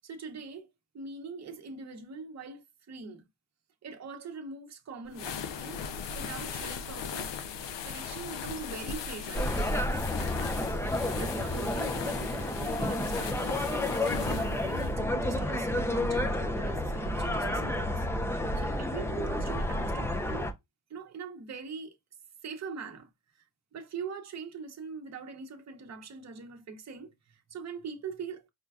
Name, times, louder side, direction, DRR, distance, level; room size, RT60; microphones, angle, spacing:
voice 1, 0.0-3.3 3.8-5.8 6.1-7.3 7.8-9.6 10.7-20.5 20.9-22.0 22.4-23.1 23.3-23.5 23.7-28.5, right 5 dB, 40° right, 0.8 m, -43 dB
sound 1, 5.1-14.9, left 6 dB, 75° left, 0.6 m, -38 dB
sound 2, 9.3-20.5, left 1 dB, 5° left, 0.4 m, -30 dB
5.1 x 2.2 x 2.3 m
cardioid pair, 100°, 43 cm